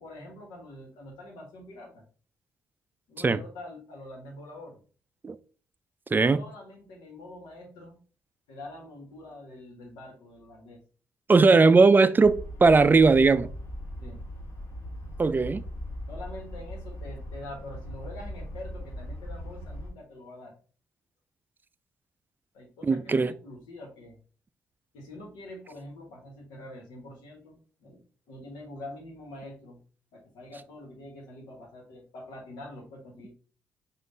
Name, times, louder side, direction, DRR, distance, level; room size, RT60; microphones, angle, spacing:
voice 1, 0.0-2.0 3.1-4.8 6.3-8.0 8.5-10.8 14.0-14.2 16.1-20.6 22.5-24.2 24.9-29.8 30.1-33.3, left 1 dB, 80° left, 1.2 m, -45 dB
voice 2, 6.1-6.4 11.3-13.5 15.2-15.6 22.8-23.3, right 4 dB, 25° right, 0.4 m, -19 dB
sound 1, 12.2-19.9, equal, 45° left, 1.8 m, -39 dB
5.2 x 2.5 x 3.8 m
hypercardioid pair, 50°, 7 cm